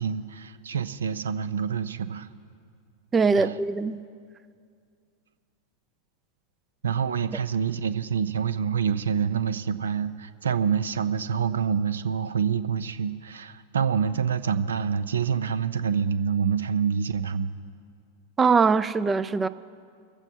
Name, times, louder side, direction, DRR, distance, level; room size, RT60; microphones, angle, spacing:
voice 1, 0.0-2.3 3.3-3.6 6.8-17.5, right 7 dB, 70° right, 0.6 m, -27 dB
voice 2, 3.1-4.0 18.4-19.5, right 4 dB, 15° right, 0.4 m, -22 dB
23.5 x 7.9 x 4.4 m
figure-of-eight pair, 90°, 0 cm